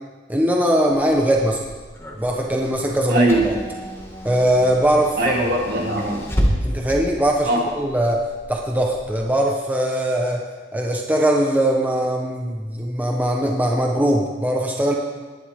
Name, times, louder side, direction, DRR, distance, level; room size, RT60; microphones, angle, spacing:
voice 1, 0.3-1.7 2.2-3.5 4.2-5.4 6.6-14.9, right 1 dB, 10° right, 0 dB, 1.0 m, -21 dB
Car / Engine, 0.9-9.2, equal, 15° left, 1.9 m, -30 dB
voice 2, 3.1-3.5 5.2-6.2 7.4-7.6, right 1 dB, 60° right, -1 dB, 2.6 m, -20 dB
19.5 x 11.0 x 3.6 m, 1.4 s
head